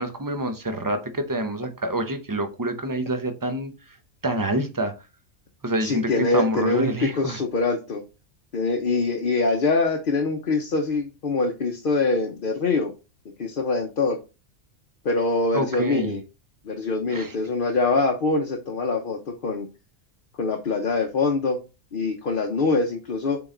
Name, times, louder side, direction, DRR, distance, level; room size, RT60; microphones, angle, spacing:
voice 1, 0.0-3.7 4.2-4.9 5.6-7.4 15.5-16.2 17.1-17.4, right 1 dB, 20° right, 0.8 m, -27 dB
voice 2, 5.8-8.0 8.5-12.9 13.4-14.2 15.0-16.2 16.6-19.7 20.4-21.6 21.9-23.4, left 3 dB, 45° left, 1.0 m, -24 dB
7.7 x 4.0 x 3.8 m
omnidirectional pair, 1.3 m